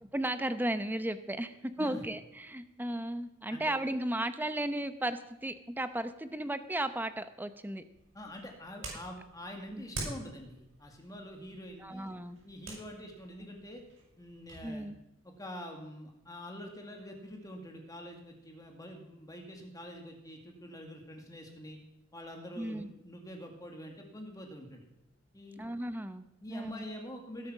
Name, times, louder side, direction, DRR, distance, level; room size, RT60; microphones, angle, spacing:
voice 1, 0.1-7.8 9.7-9.8 11.8-12.4 14.6-15.0 22.6-22.9 25.6-26.2 26.5-26.8, right 1 dB, 10° right, 11 dB, 0.8 m, -35 dB
sound 1, 7.9-14.7, right 2 dB, 85° right, 6.7 m, -47 dB
voice 2, 8.1-12.1 12.4-13.8 14.2-14.9 15.2-21.8 22.1-24.9 25.3-25.6 26.4-27.5, equal, 20° left, 2 dB, 2.1 m, -46 dB
18.5 x 8.6 x 6.2 m, 0.88 s
head